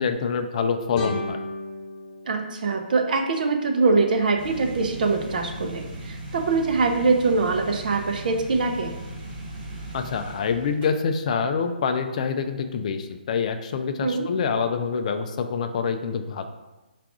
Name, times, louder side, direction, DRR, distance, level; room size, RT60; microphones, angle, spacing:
voice 1, 0.0-1.4 9.9-16.4, left 5 dB, 45° left, 7 dB, 0.4 m, -26 dB
sound 1, 0.9-4.0, left 2 dB, 25° left, 1.1 m, -36 dB
voice 2, 2.3-8.9 14.0-14.3, right 3 dB, 55° right, 4 dB, 0.6 m, -23 dB
sound 2, 4.4-10.9, right 1 dB, 25° right, 1.0 m, -38 dB
4.7 x 2.5 x 3.5 m, 1.1 s
hypercardioid pair, 145°, 5 cm